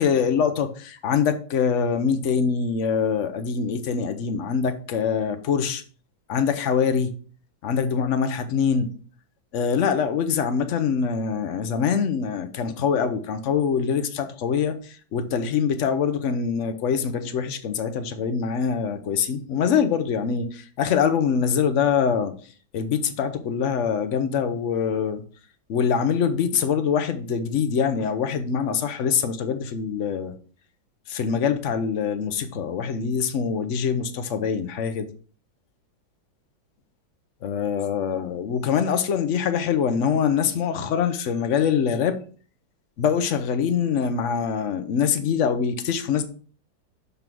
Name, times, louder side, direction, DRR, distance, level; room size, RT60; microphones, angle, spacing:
voice 1, 0.0-5.8 6.3-7.1 7.6-8.9 9.5-22.3 22.7-25.2 25.7-30.3 31.1-35.1 37.4-42.2 43.0-46.2, left 6 dB, 60° left, 7 dB, 0.8 m, -24 dB
6.8 x 3.7 x 6.0 m, 0.41 s
omnidirectional pair, 2.1 m